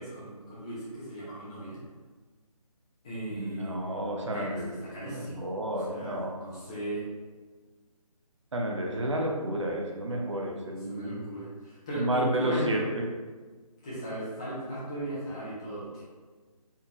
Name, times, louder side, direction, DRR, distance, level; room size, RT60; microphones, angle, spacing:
voice 1, 0.0-1.8 3.0-4.1 4.3-5.5 5.9-7.1 10.7-12.8 13.8-16.0, right 1 dB, 10° left, -8 dB, 0.5 m, -37 dB
voice 2, 3.4-4.7 5.0-6.4 8.5-11.3 12.0-12.8, right 1 dB, 50° right, 0 dB, 0.7 m, -31 dB
4.5 x 3.5 x 2.4 m, 1.4 s
figure-of-eight pair, 155°, 20 cm